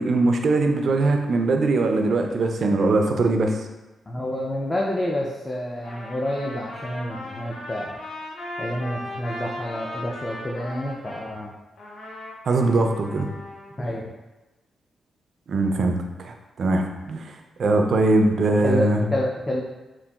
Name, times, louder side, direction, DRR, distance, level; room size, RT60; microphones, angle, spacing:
voice 1, 0.0-3.7 12.4-13.3 15.5-17.3 17.6-19.0, right 2 dB, 60° right, 4 dB, 0.3 m, -21 dB
voice 2, 4.1-8.0 8.6-11.5 13.8-14.1 18.6-19.6, left 1 dB, 20° left, -3 dB, 0.4 m, -28 dB
Trumpet, 5.7-11.3 11.8-13.7, left 1 dB, 75° left, 0.6 m, -37 dB
3.8 x 2.4 x 2.3 m, 1.1 s
cardioid pair, 90°, 0 cm